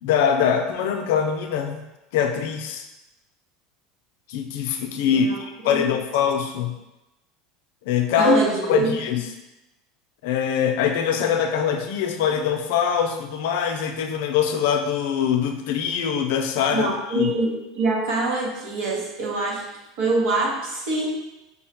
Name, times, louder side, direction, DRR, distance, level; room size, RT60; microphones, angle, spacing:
voice 1, 0.0-1.8 2.1-2.9 4.3-6.7 7.9-8.4 8.7-9.2 10.2-16.9 17.1-17.3, left 8 dB, 75° left, 6 dB, 0.4 m, -23 dB
voice 2, 5.0-5.8 8.2-8.9 16.7-19.6 20.0-21.2, right 3 dB, 70° right, -2 dB, 1.0 m, -24 dB
5.3 x 2.1 x 2.9 m, 0.96 s
supercardioid pair, 105°, 0 cm